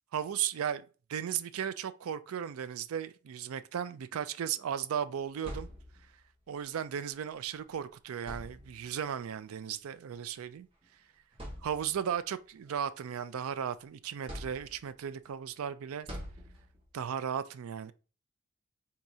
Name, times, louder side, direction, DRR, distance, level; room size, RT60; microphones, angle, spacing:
voice 1, 0.1-5.7 6.5-10.7 11.6-16.1 16.9-17.9, right 8 dB, 90° right, 0.4 m, -36 dB
sound 1, 5.1-6.3 7.5-7.7 8.2-9.0 10.1-10.3 10.8-10.9 11.3-12.1 12.6-13.7 14.3-15.1 16.1-17.0, equal, 25° right, 1.3 m, -45 dB
4.7 x 2.8 x 2.7 m
head